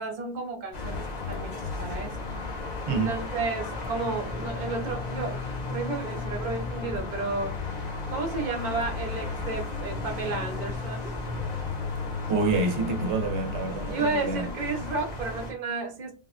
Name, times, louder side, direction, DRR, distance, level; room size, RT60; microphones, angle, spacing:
voice 1, 0.0-2.2 2.9-7.6 8.1-11.1 13.9-16.1, right 3 dB, 50° right, 0.8 m, -32 dB
sound 1, 0.7-15.5, left 3 dB, 45° left, 0.8 m, -34 dB
voice 2, 12.3-14.5, right 3 dB, 90° right, 0.9 m, -27 dB
3.5 x 2.2 x 2.4 m
omnidirectional pair, 1.1 m